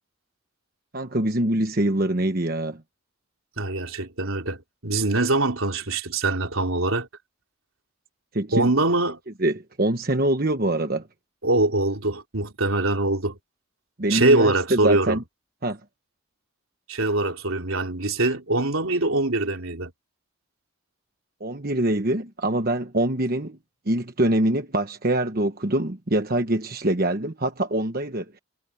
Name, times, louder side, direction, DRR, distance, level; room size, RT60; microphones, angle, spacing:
voice 1, 0.9-2.8 8.3-8.7 9.4-11.1 14.0-15.2 15.6-15.8 21.4-23.6 23.9-28.4, right 1 dB, 45° right, 1.2 m, -24 dB
voice 2, 3.6-7.1 8.5-9.2 11.4-13.4 14.1-15.2 16.9-19.9, right 2 dB, 80° right, 3.3 m, -23 dB
head